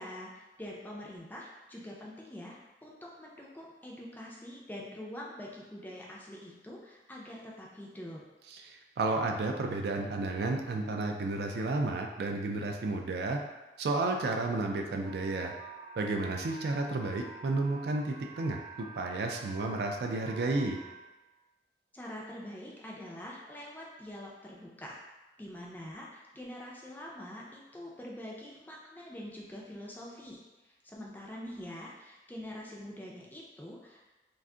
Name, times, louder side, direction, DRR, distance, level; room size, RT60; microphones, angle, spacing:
voice 1, 0.0-8.2 21.9-25.0 25.4-34.0, left 1 dB, 10° left, -3 dB, 0.3 m, -45 dB
voice 2, 8.5-13.4 13.8-15.5 16.0-20.8, right 3 dB, 65° right, 3 dB, 0.3 m, -32 dB
sound 1, 15.0-20.9, right 3 dB, 35° right, 0.7 m, -49 dB
2.5 x 2.3 x 3.6 m, 1.1 s
head